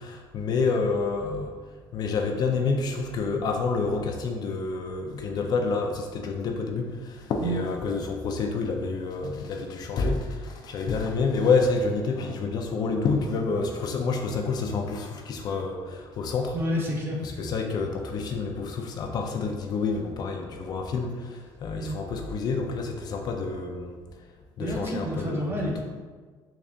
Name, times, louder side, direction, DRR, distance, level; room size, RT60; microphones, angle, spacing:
voice 1, 0.0-1.5 1.9-16.5 17.2-24.0 24.6-25.8, left 4 dB, 50° left, 3 dB, 0.4 m, -28 dB
voice 2, 16.5-17.2 21.8-22.0 24.6-25.8, equal, 25° right, -2 dB, 0.7 m, -29 dB
3.7 x 2.4 x 3.4 m, 1.5 s
cardioid pair, 140°, 9 cm